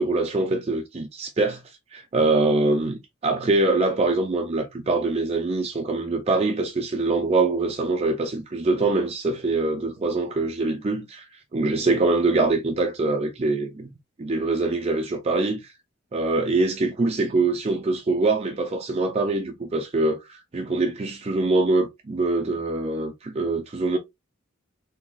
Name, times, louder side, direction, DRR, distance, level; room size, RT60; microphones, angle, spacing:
voice 1, 0.0-1.6 1.9-11.3 11.5-13.9 14.2-15.7 16.1-24.0, right 3 dB, 30° right, 0.4 m, -24 dB
3.8 x 2.9 x 2.3 m
head